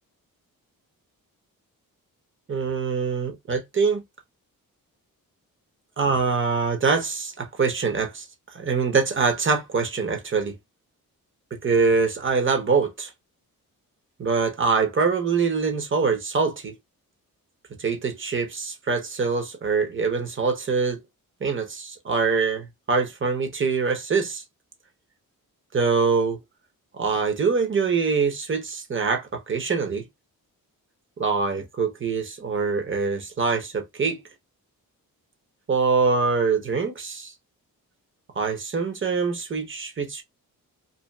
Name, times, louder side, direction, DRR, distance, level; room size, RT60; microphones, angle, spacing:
voice 1, 2.5-4.0 6.0-8.3 8.5-10.5 11.6-13.1 14.2-16.7 17.8-21.0 21.4-24.4 25.7-26.4 26.9-30.0 31.2-34.2 35.7-37.3 38.4-40.2, right 5 dB, 35° right, 0.9 m, -24 dB
2.7 x 2.4 x 2.2 m
cardioid pair, 75°, 36 cm